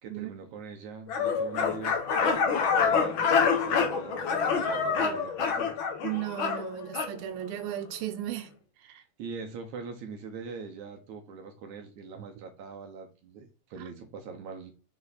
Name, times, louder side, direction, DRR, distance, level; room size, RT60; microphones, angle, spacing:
voice 1, 0.0-5.7 9.2-14.7, right 5 dB, 65° right, 2.2 m, -42 dB
sound 1, 1.1-7.1, left 6 dB, 60° left, 1.3 m, -26 dB
voice 2, 6.0-9.0 13.8-13.9, right 12 dB, 85° right, 2.7 m, -36 dB
6.6 x 4.9 x 4.1 m
omnidirectional pair, 4.1 m